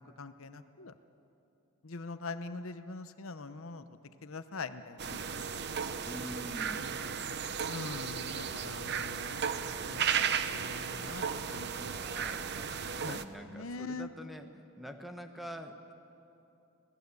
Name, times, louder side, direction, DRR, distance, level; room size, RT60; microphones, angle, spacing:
voice 1, 0.2-0.9 1.8-3.8 4.2-5.4 7.6-9.5 9.8-12.0 13.0-13.2 13.5-14.1, left 3 dB, 65° left, 11 dB, 0.9 m, -43 dB
sound 1, 5.0-13.2, right 7 dB, 50° right, 0.8 m, -35 dB
voice 2, 6.0-6.9 11.8-15.9, equal, ahead, 6 dB, 1.2 m, -46 dB
26.0 x 18.0 x 8.3 m, 2.9 s
head